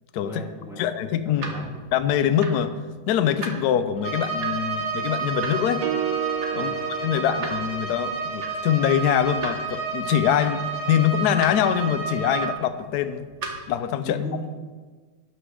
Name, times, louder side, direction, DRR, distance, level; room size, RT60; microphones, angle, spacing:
voice 1, 0.2-0.8 1.2-1.8 6.5-6.8 7.1-7.4 14.0-14.4, left 2 dB, ahead, -4 dB, 1.7 m, -36 dB
voice 2, 0.8-1.4 1.9-2.7 3.1-5.9 6.6-6.7 7.0-13.3 13.7-14.2, left 9 dB, 75° left, 10 dB, 0.9 m, -23 dB
sound 1, 0.9-13.8, right 3 dB, 40° right, 1.2 m, -40 dB
Bowed string instrument, 4.0-12.6, right 4 dB, 40° left, 2.0 m, -30 dB
sound 2, 5.8-8.1, right 9 dB, 80° right, 0.8 m, -31 dB
11.0 x 6.1 x 6.3 m, 1.4 s
omnidirectional pair, 2.3 m